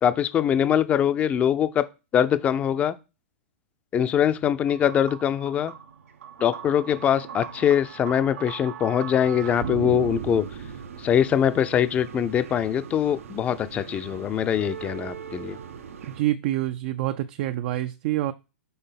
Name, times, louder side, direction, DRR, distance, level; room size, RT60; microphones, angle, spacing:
voice 1, 0.0-1.8 2.1-3.0 3.9-5.7 6.4-10.4 11.0-15.6, left 9 dB, 20° left, 0.5 m, -23 dB
sound 1, 4.6-16.2, right 7 dB, 85° right, 0.9 m, -38 dB
voice 2, 16.1-18.3, right 14 dB, 45° right, 0.4 m, -27 dB
5.5 x 4.0 x 5.7 m
hypercardioid pair, 150°, 7 cm